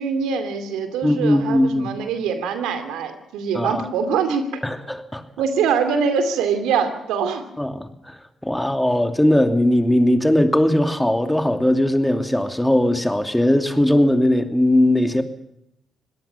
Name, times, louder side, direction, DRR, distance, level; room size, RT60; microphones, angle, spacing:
voice 1, 0.0-4.5 5.4-7.4, right 6 dB, 80° right, 9 dB, 2.6 m, -23 dB
voice 2, 1.0-1.9 3.5-3.9 4.6-5.2 7.6-15.2, left 1 dB, 10° left, 7 dB, 2.7 m, -19 dB
25.0 x 18.0 x 5.8 m, 0.79 s
hypercardioid pair, 50°, 0 cm